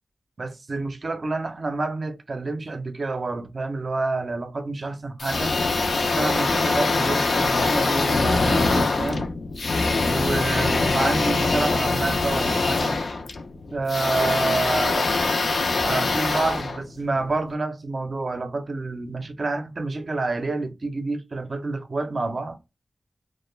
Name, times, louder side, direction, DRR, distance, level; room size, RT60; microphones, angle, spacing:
voice 1, 0.4-5.6 6.1-9.3 10.0-13.0 13.7-15.1 15.8-22.6, right 3 dB, 50° right, 0.5 m, -28 dB
sound 1, 5.2-17.4, left 3 dB, 70° left, 0.4 m, -23 dB
2.2 x 2.0 x 3.0 m
wide cardioid pair, 90°, 0 cm